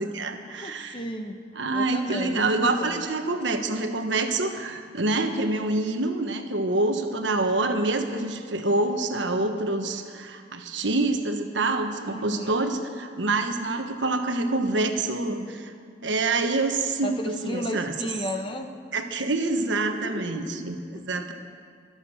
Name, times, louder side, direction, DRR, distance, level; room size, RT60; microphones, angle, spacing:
voice 1, 0.0-1.0 1.5-15.7 16.0-17.9 18.9-20.8 21.1-21.3, right 2 dB, 90° right, 6 dB, 1.3 m, -26 dB
voice 2, 0.6-1.4 1.7-2.5 2.8-3.1 12.1-12.6 17.0-18.7 19.9-20.7 20.9-21.3, equal, 30° left, 5 dB, 1.0 m, -34 dB
24.0 x 8.3 x 6.5 m, 2.1 s
head